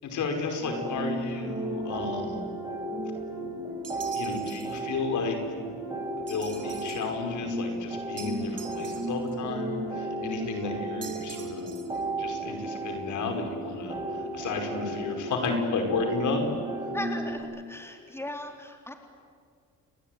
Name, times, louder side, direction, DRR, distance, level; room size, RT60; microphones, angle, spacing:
voice 1, 0.0-2.4 4.1-5.4 6.3-11.7 12.2-16.4, left 4 dB, 75° left, 4 dB, 5.3 m, -32 dB
sound 1, 0.6-17.4, right 1 dB, 15° right, 7.8 m, -34 dB
sound 2, 3.8-4.8 6.3-7.1 8.2-9.3 11.0-12.0, right 7 dB, 55° right, 3.9 m, -45 dB
voice 2, 16.9-18.9, left 1 dB, 10° left, 3 dB, 3.8 m, -37 dB
29.0 x 21.5 x 9.4 m, 2.2 s
cardioid pair, 90°, 30 cm